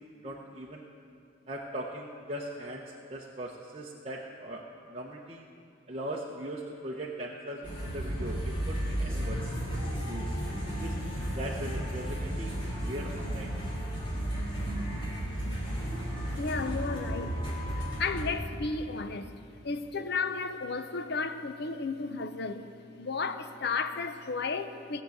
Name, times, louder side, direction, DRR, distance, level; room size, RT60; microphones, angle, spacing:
voice 1, 0.2-0.9 1.5-5.5 5.9-9.4 9.7-10.3 10.8-11.0 11.3-13.5, right 1 dB, 30° right, 0.8 m, -40 dB
sound 1, 7.6-18.3, right 1 dB, 25° left, 3.0 m, -33 dB
voice 2, 16.4-17.4 17.7-19.3 19.6-22.7 23.0-25.0, left 4 dB, 55° left, 0.6 m, -33 dB
16.5 x 7.2 x 7.8 m
head